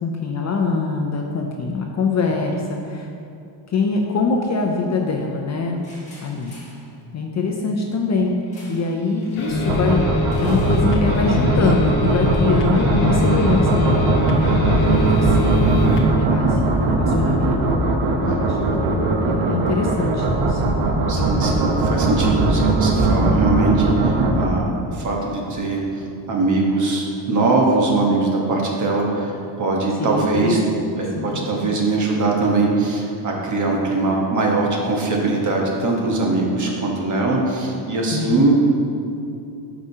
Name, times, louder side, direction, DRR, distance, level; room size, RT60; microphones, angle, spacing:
voice 1, 0.0-3.1 3.7-5.9 6.2-6.5 7.1-10.0 10.4-14.6 15.0-15.6 16.0-17.6 18.1-20.6 23.2-23.4 30.0-30.6 31.2-31.7 38.1-38.7, left 4 dB, 35° left, 1 dB, 0.4 m, -24 dB
sound 1, 5.8-6.9 8.5-8.9 9.2-9.5 10.3-12.6, left 1 dB, 15° left, 1.3 m, -34 dB
sound 2, 9.3-16.1, left 1 dB, 75° left, 1.1 m, -22 dB
sound 3, 9.7-24.5, right 2 dB, 80° right, 0.9 m, -20 dB
voice 2, 21.1-30.6 31.0-38.7, right 3 dB, 35° right, -1 dB, 1.1 m, -21 dB
12.0 x 4.9 x 2.8 m, 2.6 s
cardioid pair, 170°, 49 cm